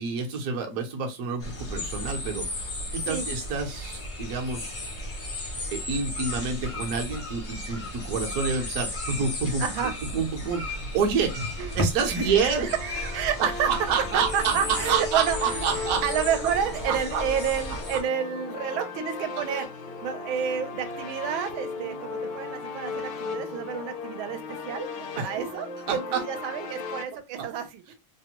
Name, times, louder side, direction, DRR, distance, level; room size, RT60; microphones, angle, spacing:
voice 1, 0.0-2.5 2.9-4.8 5.7-11.5 11.7-16.1 16.9-17.2 25.2-25.5 25.9-26.2, right 5 dB, 60° right, 1.0 m, -28 dB
sound 1, 1.4-18.0, left 1 dB, 50° left, 0.5 m, -35 dB
voice 2, 9.6-9.9 11.6-11.8 12.2-12.7 13.1-13.7 14.1-19.7 20.0-27.9, right 8 dB, 80° right, 1.4 m, -30 dB
sound 2, 9.9-18.1, equal, 20° right, 0.6 m, -40 dB
sound 3, 12.3-27.0, left 4 dB, 70° left, 1.1 m, -36 dB
3.3 x 2.1 x 2.9 m
omnidirectional pair, 2.2 m